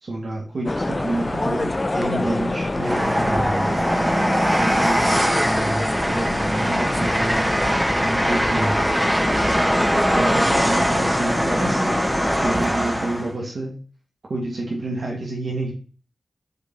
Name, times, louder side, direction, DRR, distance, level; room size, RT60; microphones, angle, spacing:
voice 1, 0.0-3.8 4.6-7.7 8.0-8.9 10.1-12.0 12.4-13.8 14.3-15.7, right 2 dB, 75° right, -2 dB, 1.9 m, -28 dB
sound 1, 0.6-12.5, left 2 dB, 30° left, 0.5 m, -27 dB
Train, 2.8-13.3, equal, 15° right, 1.2 m, -21 dB
8.1 x 4.1 x 3.9 m, 0.38 s
wide cardioid pair, 85°, 0 cm